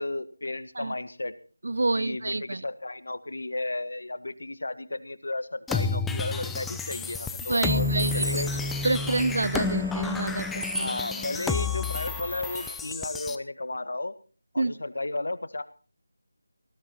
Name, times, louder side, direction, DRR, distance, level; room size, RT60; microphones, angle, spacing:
voice 1, 0.0-1.3 2.0-8.5 10.8-14.1 14.5-15.6, left 2 dB, 65° left, 12 dB, 1.7 m, -34 dB
voice 2, 1.6-2.6 7.5-8.4 8.8-10.9 14.6-14.8, right 2 dB, 60° right, 20 dB, 0.6 m, -28 dB
sound 1, 5.7-13.4, left 4 dB, 5° left, 0.7 m, -30 dB
sound 2, 7.7-12.7, right 1 dB, 85° right, 4.0 m, -39 dB
19.5 x 14.5 x 4.3 m, 0.38 s
figure-of-eight pair, 165°, 0 cm